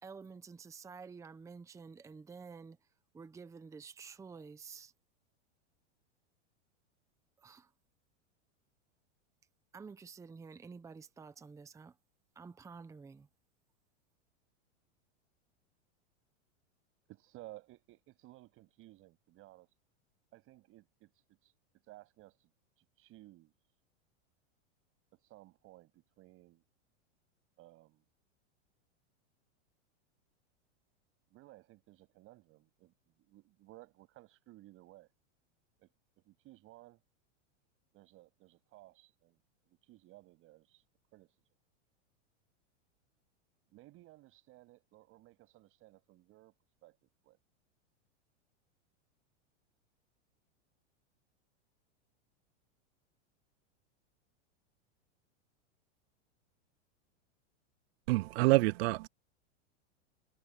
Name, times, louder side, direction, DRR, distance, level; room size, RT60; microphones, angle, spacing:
voice 1, 0.0-2.8 3.1-4.9 7.4-7.7 9.7-12.0 12.3-13.3, right 5 dB, 10° right, 0.9 m, -50 dB
voice 2, 17.1-19.7 20.3-21.5 21.8-22.5 22.8-23.5 25.1-26.6 27.6-28.0 31.3-35.1 35.8-35.9 36.2-37.0 37.9-39.4 39.6-40.8 41.1-41.4 43.7-46.5 46.8-47.0 47.2-47.4, right 18 dB, 35° right, 7.9 m, -57 dB
voice 3, 58.1-59.1, right 22 dB, 60° right, 0.5 m, -27 dB
supercardioid pair, 145°, 36 cm